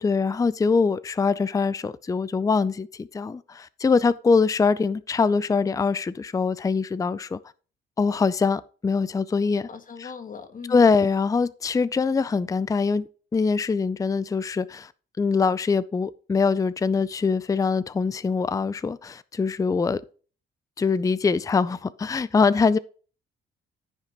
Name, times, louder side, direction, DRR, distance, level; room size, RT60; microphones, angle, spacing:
voice 1, 0.0-7.4 8.0-9.7 10.0-10.1 10.7-14.9 15.2-20.0 20.8-22.8, left 4 dB, 15° left, 0.4 m, -23 dB
voice 2, 9.7-10.9, left 6 dB, 40° left, 1.5 m, -39 dB
14.0 x 5.7 x 3.0 m
cardioid pair, 90°, 20 cm